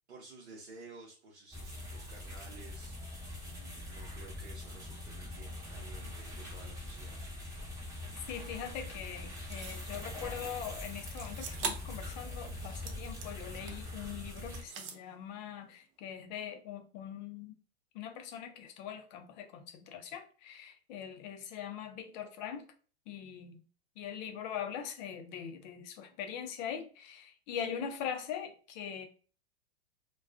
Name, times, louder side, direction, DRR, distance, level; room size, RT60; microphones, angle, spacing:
voice 1, 0.1-3.0 3.4-7.2, right 3 dB, 75° right, 0.8 m, -53 dB
sound 1, 1.5-14.6, left 2 dB, 10° right, 0.9 m, -43 dB
voice 2, 8.3-17.6 17.9-22.7 23.1-23.6 24.0-29.1, left 8 dB, 40° left, 0.5 m, -42 dB
sound 2, 9.5-9.9 11.1-12.0 12.4-13.9 14.4-15.0, right 6 dB, 35° right, 0.4 m, -42 dB
2.3 x 2.2 x 2.4 m
hypercardioid pair, 110°, 33 cm